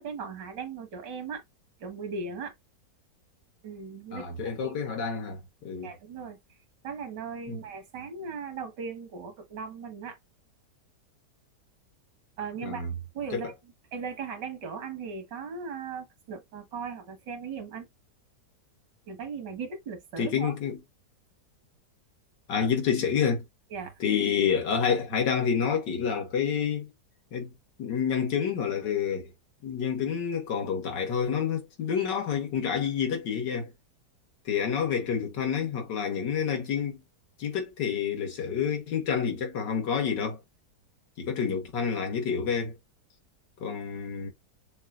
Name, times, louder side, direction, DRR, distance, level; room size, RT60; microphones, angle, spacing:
voice 1, 0.0-1.4 1.8-2.5 3.6-4.8 5.8-6.4 6.8-10.2 12.4-12.9 13.1-13.5 13.9-17.9 19.1-20.5 23.7-23.9, right 5 dB, 90° right, 2.0 m, -38 dB
voice 2, 4.1-5.9 7.5-7.6 12.7-12.9 13.3-13.4 20.2-20.8 22.5-23.4 24.0-26.9 27.3-27.5 27.8-29.3 29.6-33.7 34.5-37.0 37.4-40.4 41.2-42.8 43.6-44.3, left 7 dB, 90° left, 2.0 m, -28 dB
6.4 x 2.4 x 2.5 m
omnidirectional pair, 1.8 m